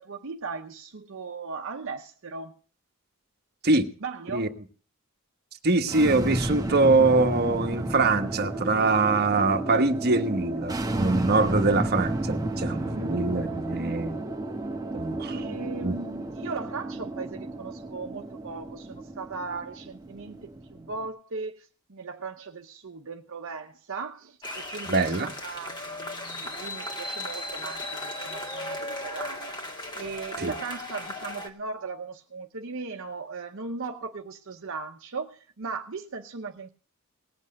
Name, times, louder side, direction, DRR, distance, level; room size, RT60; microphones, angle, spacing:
voice 1, 0.0-2.5 4.0-4.6 12.8-14.0 15.3-29.6 29.9-36.7, right 4 dB, 65° right, 0.9 m, -38 dB
voice 2, 5.6-14.2 14.9-15.4 15.8-16.0 24.9-25.3 30.4-30.5, right 3 dB, 50° right, 1.2 m, -23 dB
sound 1, 5.8-21.1, right 1 dB, 15° right, 1.1 m, -32 dB
sound 2, 24.4-31.5, left 1 dB, 20° left, 1.9 m, -36 dB
18.5 x 8.1 x 6.4 m
head